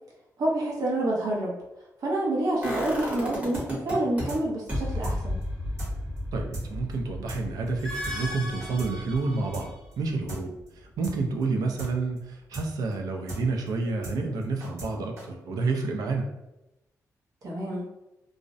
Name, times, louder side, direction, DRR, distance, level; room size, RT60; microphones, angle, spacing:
voice 1, 0.4-1.6 2.0-5.4 17.4-17.9, right 1 dB, 70° right, -3 dB, 0.8 m, -28 dB
sound 1, 2.6-4.2 4.7-10.5 10.8-10.9, left 1 dB, 25° right, 0.9 m, -34 dB
sound 2, 3.5-3.7 3.9-4.0 4.3-4.4 4.7-4.8 5.0-5.2 5.4-5.5 5.8-5.9 6.2-6.3 6.5-6.7 6.9-7.0 7.3-7.4 7.7-7.8 8.0-8.2 8.4-8.9 9.2-9.3 9.5-9.7 9.9-10.0 10.3-10.4 10.7-10.8 11.0-11.2 11.4-11.5 11.8-11.9 12.2-12.3 12.5-12.7 12.9-13.0 13.3-13.4 13.7-13.8 14.0-14.2 14.4-14.9 15.2-15.3, right 1 dB, 45° right, 1.2 m, -37 dB
voice 2, 6.3-16.3, right 3 dB, 85° right, 2 dB, 0.4 m, -29 dB
sound 3, 7.6-9.9, equal, 10° left, 0.6 m, -38 dB
2.4 x 2.0 x 2.5 m, 0.93 s
cardioid pair, 105°, 6 cm